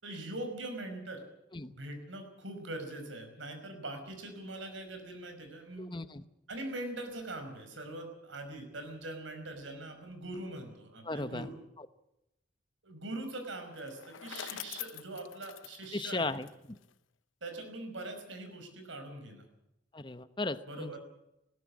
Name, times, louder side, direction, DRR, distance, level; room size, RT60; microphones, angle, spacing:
voice 1, 0.0-1.2 1.6-6.0 6.5-11.5 12.8-16.4 17.4-19.5 20.7-21.0, right 2 dB, 85° right, 6 dB, 5.3 m, -42 dB
voice 2, 5.8-6.2 11.0-11.5 11.8-11.9 15.9-16.8 19.9-21.0, left 2 dB, 25° left, 12 dB, 0.9 m, -36 dB
Bicycle, 13.7-16.9, left 11 dB, 90° left, 0.7 m, -45 dB
20.0 x 17.0 x 8.5 m, 0.86 s
head